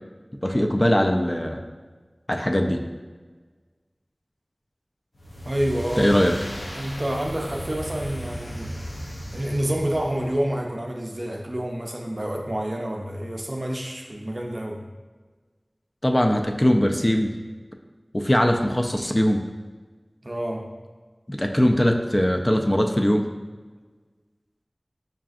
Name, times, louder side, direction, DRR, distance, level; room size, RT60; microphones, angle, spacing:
voice 1, 0.4-1.6 2.3-2.8 6.0-6.4 16.0-17.3 18.1-19.5 21.3-23.3, equal, 30° left, 3 dB, 0.3 m, -21 dB
sound 1, 5.1-10.5, equal, 85° left, 0.6 m, -36 dB
voice 2, 5.5-6.2 6.7-8.7 9.3-14.8 20.2-20.7, right 1 dB, 50° right, 1 dB, 0.5 m, -28 dB
5.5 x 2.5 x 2.4 m, 1.4 s
wide cardioid pair, 40°, 0 cm